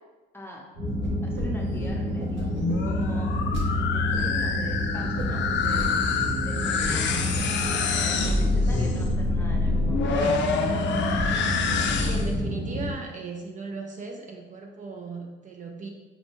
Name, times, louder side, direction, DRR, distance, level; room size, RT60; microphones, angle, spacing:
voice 1, 0.3-0.6 1.2-2.6 2.8-3.5 3.9-6.2 6.4-7.2 8.0-10.3, left 1 dB, 10° left, -1 dB, 0.7 m, -42 dB
sound 1, 0.8-12.9, equal, 90° right, 1.2 m, -29 dB
sound 2, 1.0-1.5 1.7-3.6 4.1-4.5 5.2-5.9 6.2-6.3 6.8-6.9 7.2-7.8 8.1-8.6 9.0-9.3, equal, 65° right, 1.0 m, -37 dB
sound 3, 2.4-12.4, left 4 dB, 65° left, 0.4 m, -27 dB
voice 2, 8.1-8.9 11.7-15.9, right 3 dB, 40° right, 2 dB, 0.4 m, -38 dB
5.2 x 2.1 x 3.0 m, 1.2 s
cardioid pair, 90°, 20 cm